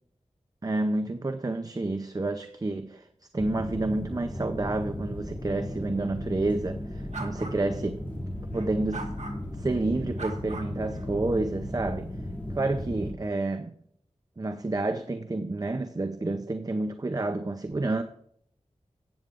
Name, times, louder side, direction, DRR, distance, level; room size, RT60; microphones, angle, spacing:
voice 1, 0.6-3.1 3.3-8.0 8.5-9.1 9.6-12.1 12.5-13.7 14.4-18.0, right 2 dB, 30° right, 8 dB, 0.6 m, -29 dB
sound 1, 3.4-13.1, left 1 dB, 15° left, 2.4 m, -35 dB
sound 2, 7.1-7.6 8.5-9.4 10.2-11.1, right 3 dB, 75° right, 1.5 m, -39 dB
14.0 x 9.0 x 2.5 m, 0.67 s
wide cardioid pair, 80°, 12 cm